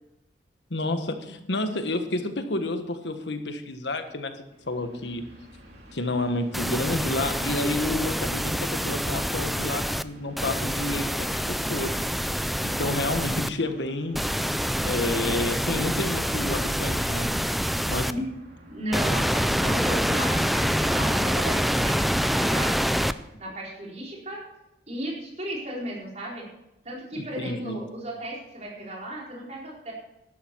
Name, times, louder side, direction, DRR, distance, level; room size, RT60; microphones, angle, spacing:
voice 1, 0.7-4.3 4.7-5.2 5.9-12.0 12.6-14.2 14.8-17.3 17.9-18.2 27.2-27.8, left 2 dB, 75° left, 7 dB, 1.4 m, -30 dB
Train, 4.4-22.5, equal, 65° right, 3.1 m, -50 dB
sound 1, 6.5-10.0 10.4-13.5 14.1-18.1 18.9-23.1, equal, ahead, 0.3 m, -26 dB
voice 2, 18.7-23.1 23.4-24.5 24.9-26.5 26.8-29.9, right 1 dB, 40° right, -3 dB, 4.2 m, -35 dB
12.0 x 12.0 x 4.7 m, 0.91 s
head